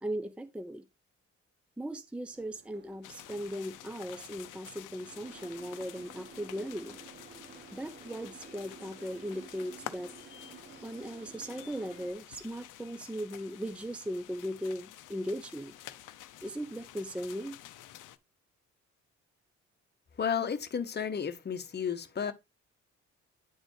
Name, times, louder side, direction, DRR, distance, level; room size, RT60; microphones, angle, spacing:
voice 1, 0.0-0.8 1.8-7.0 7.7-10.1 10.8-15.7 16.4-17.6, equal, 5° right, 0.6 m, -38 dB
Boat Water vehicle, 2.3-12.1, right 5 dB, 35° right, 1.3 m, -53 dB
sound 1, 3.0-18.2, left 13 dB, 85° left, 0.6 m, -50 dB
voice 2, 20.2-22.3, left 7 dB, 35° left, 1.0 m, -32 dB
10.0 x 4.0 x 3.2 m
cardioid pair, 90°, 30 cm